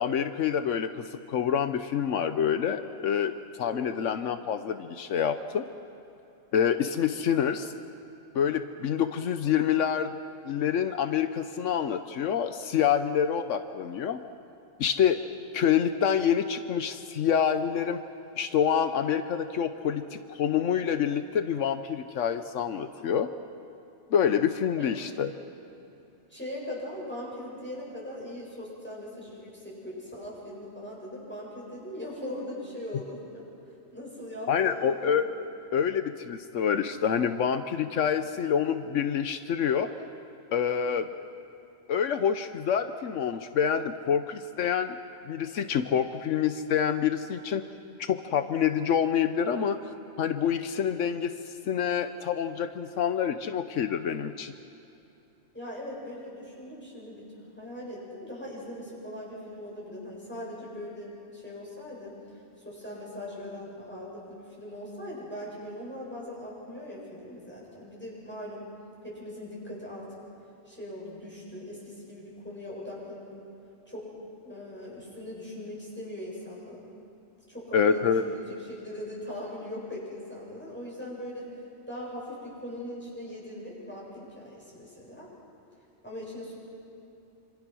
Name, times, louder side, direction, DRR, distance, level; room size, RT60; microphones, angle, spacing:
voice 1, 0.0-3.3 3.6-5.7 6.5-7.7 8.3-10.1 10.4-14.2 14.8-15.2 15.5-18.0 18.4-23.3 24.1-25.3 34.5-35.2 35.7-39.9 40.5-41.1 41.9-45.0 45.3-47.6 48.0-49.8 50.2-51.3 51.6-54.5 77.7-78.2, left 8 dB, 85° left, 9 dB, 1.2 m, -27 dB
voice 2, 3.7-4.1 24.8-24.9 26.3-33.4 33.9-35.1 55.5-68.7 69.0-70.1 70.7-73.3 73.9-74.1 74.4-76.8 77.5-81.5 81.9-85.3 86.0-86.5, left 1 dB, 10° left, -5 dB, 7.7 m, -40 dB
26.5 x 26.5 x 6.3 m, 2.9 s
omnidirectional pair, 1.2 m